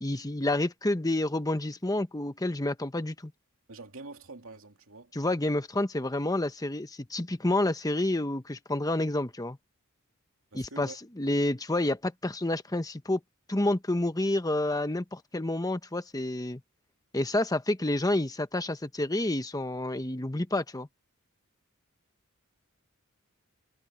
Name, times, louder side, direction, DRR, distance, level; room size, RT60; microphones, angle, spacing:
voice 1, 0.0-3.3 5.1-9.6 10.5-13.2 13.5-16.6 17.1-20.9, left 1 dB, 15° left, 1.1 m, -29 dB
voice 2, 3.7-5.1 10.5-11.0, right 3 dB, 65° right, 3.0 m, -45 dB
head